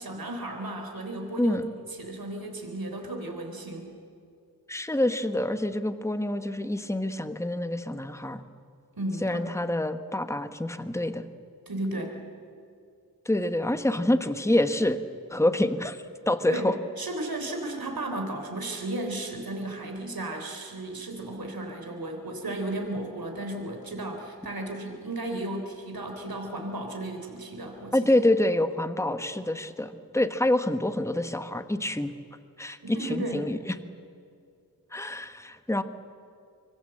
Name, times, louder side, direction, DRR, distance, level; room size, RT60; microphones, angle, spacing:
voice 1, 0.0-1.6 2.0-3.9 9.0-9.4 11.7-12.1 16.5-16.7 17.0-28.0 32.8-33.4, right 1 dB, 70° right, 3 dB, 3.7 m, -34 dB
voice 2, 1.4-1.7 4.7-8.4 9.2-11.2 13.2-15.0 15.3-16.0 16.3-16.7 27.9-32.1 32.6-33.8 34.9-35.8, left 1 dB, 10° left, 9 dB, 1.2 m, -26 dB
25.5 x 23.5 x 7.8 m, 2.4 s
wide cardioid pair, 75°, 37 cm